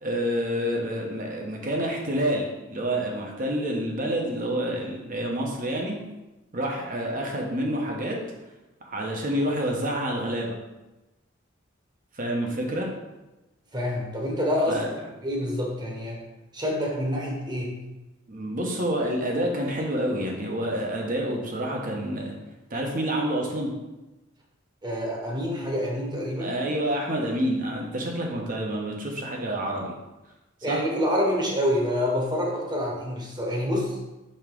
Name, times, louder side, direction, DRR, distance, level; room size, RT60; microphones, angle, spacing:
voice 1, 0.0-6.0 6.5-8.2 8.8-10.6 12.1-12.9 14.7-14.9 18.3-22.4 22.7-23.7 26.4-29.9 30.7-30.8, right 1 dB, 45° right, 0 dB, 1.1 m, -28 dB
voice 2, 13.7-14.8 15.2-16.2 16.5-17.7 24.8-26.6 30.6-33.9, equal, 20° right, -2 dB, 1.3 m, -27 dB
5.5 x 3.6 x 5.3 m, 1.1 s
head